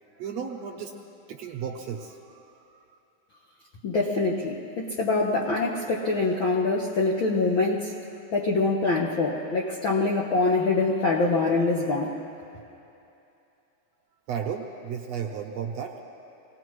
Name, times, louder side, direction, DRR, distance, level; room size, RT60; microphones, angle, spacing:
voice 1, 0.2-1.0 1.3-2.8 14.3-15.9, right 7 dB, 70° right, 2 dB, 1.8 m, -34 dB
voice 2, 3.8-7.9 8.3-12.1, left 3 dB, 75° left, -2 dB, 1.1 m, -24 dB
24.5 x 18.0 x 3.1 m, 2.8 s
omnidirectional pair, 3.6 m